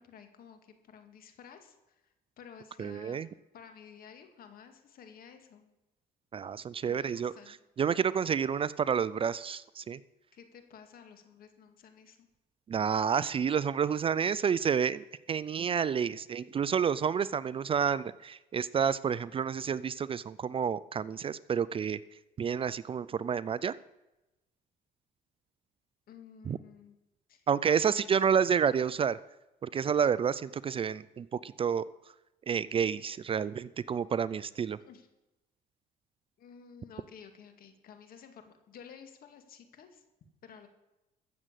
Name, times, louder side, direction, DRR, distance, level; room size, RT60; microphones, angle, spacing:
voice 1, 0.0-3.2 3.5-5.7 6.8-7.6 10.3-12.3 26.1-27.0 27.3-27.5 27.8-28.3 34.8-35.1 36.4-40.0 40.4-40.7, left 7 dB, 60° left, 7 dB, 2.2 m, -53 dB
voice 2, 2.8-3.3 6.3-7.3 7.8-10.0 12.7-22.0 22.4-23.8 26.5-26.6 27.5-29.2 29.6-31.8 32.5-34.8, right 7 dB, 35° right, 18 dB, 0.4 m, -29 dB
14.0 x 7.6 x 8.2 m, 0.99 s
cardioid pair, 110°, 17 cm